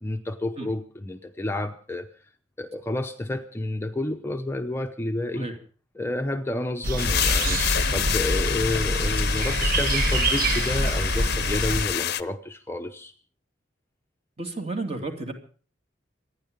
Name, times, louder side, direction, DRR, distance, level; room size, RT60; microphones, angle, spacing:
voice 1, 0.0-2.1 2.6-5.5 6.0-13.1, left 1 dB, 15° left, 6 dB, 0.7 m, -30 dB
sound 1, 6.8-11.9, right 1 dB, 50° right, 1.4 m, -25 dB
sound 2, 7.0-12.2, left 10 dB, 55° left, 0.7 m, -28 dB
voice 2, 14.4-15.3, right 2 dB, 35° right, 5 dB, 2.7 m, -32 dB
26.5 x 10.0 x 5.2 m, 0.41 s
head